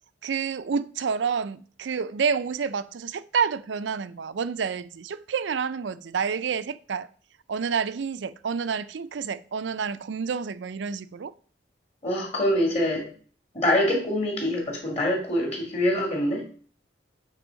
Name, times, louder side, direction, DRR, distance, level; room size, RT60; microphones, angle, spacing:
voice 1, 0.2-7.1 7.5-11.3, right 6 dB, 80° right, 0.4 m, -29 dB
voice 2, 12.0-13.1 13.5-16.4, left 1 dB, 35° left, 2.1 m, -25 dB
8.2 x 3.5 x 5.1 m
head